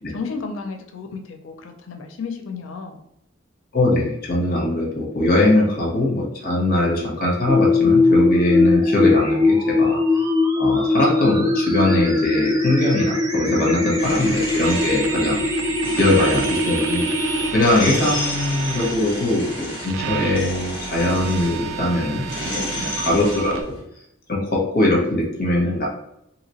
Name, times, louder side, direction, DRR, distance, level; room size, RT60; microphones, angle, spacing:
voice 1, 0.1-3.0 8.2-8.6 13.5-14.0 22.4-23.0, left 4 dB, 70° left, 4 dB, 0.5 m, -33 dB
voice 2, 3.7-10.0 10.6-15.4 15.9-17.1 17.5-23.7 24.3-25.9, left 1 dB, 45° left, -1 dB, 0.9 m, -21 dB
sound 1, 7.5-17.5, left 2 dB, 20° right, 0.5 m, -20 dB
sound 2, 14.0-23.8, left 1 dB, 25° left, 1.3 m, -33 dB
sound 3, 14.6-23.6, right 6 dB, 90° right, 0.4 m, -32 dB
2.9 x 2.8 x 2.8 m, 0.78 s
head